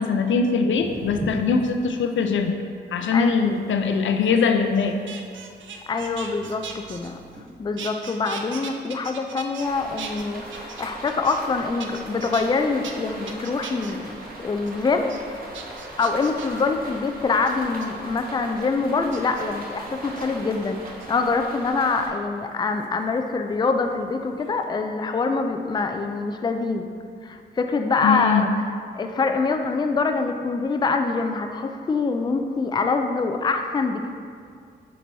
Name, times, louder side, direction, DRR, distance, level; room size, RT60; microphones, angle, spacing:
voice 1, 0.0-2.6 2.9-5.0 28.0-28.6, left 5 dB, 80° left, 6 dB, 0.5 m, -22 dB
sound 1, 0.7-2.5 3.0-7.4, right 1 dB, 15° right, 1.2 m, -41 dB
sound 2, 4.7-7.5 7.8-9.7 10.0-11.5 11.8-12.5 12.8-12.9 13.3-13.9 14.4-14.7 15.1-15.2 15.5-16.6 17.5-17.9 19.1-19.4 20.0-20.3 20.8-21.4 22.8-24.0 24.3-24.7, right 6 dB, 80° right, 0.5 m, -39 dB
voice 2, 5.9-7.2 7.6-15.5 16.0-26.9 27.2-28.5 28.9-34.2, left 4 dB, 20° left, 6 dB, 0.4 m, -25 dB
sound 3, 9.6-22.1, right 1 dB, 50° right, 1.0 m, -39 dB
5.9 x 3.9 x 4.6 m, 2.2 s
cardioid pair, 105°, 20 cm